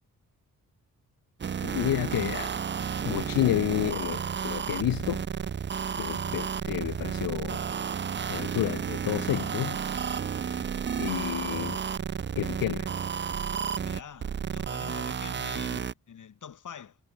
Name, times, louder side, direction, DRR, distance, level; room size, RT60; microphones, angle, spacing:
sound 1, 1.4-15.9, right 7 dB, 35° right, 0.5 m, -32 dB
voice 1, 1.6-2.5 3.0-5.2 6.0-7.6 8.3-9.8 11.0-11.8 12.4-12.9, left 13 dB, 80° left, 0.6 m, -30 dB
voice 2, 13.8-17.0, left 8 dB, 60° left, 1.7 m, -45 dB
cardioid pair, 70°, 34 cm